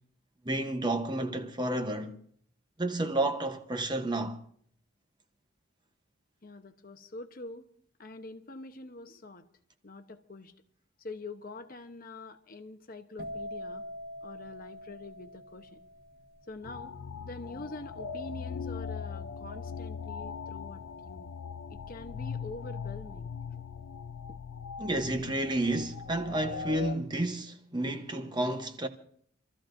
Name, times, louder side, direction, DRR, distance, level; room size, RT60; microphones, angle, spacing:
voice 1, 0.4-2.2 2.8-4.4 24.8-28.9, right 1 dB, 20° right, 0.9 m, -31 dB
voice 2, 6.4-7.7 8.0-9.5 9.8-10.5 11.0-13.8 14.2-15.8 16.5-17.0 17.2-21.3 21.7-23.6, left 2 dB, 40° left, 0.9 m, -45 dB
sound 1, 13.2-20.8 21.0-21.5, equal, 45° right, 1.1 m, -45 dB
sound 2, 16.6-26.9, left 6 dB, 85° left, 0.6 m, -40 dB
28.0 x 14.0 x 2.6 m
head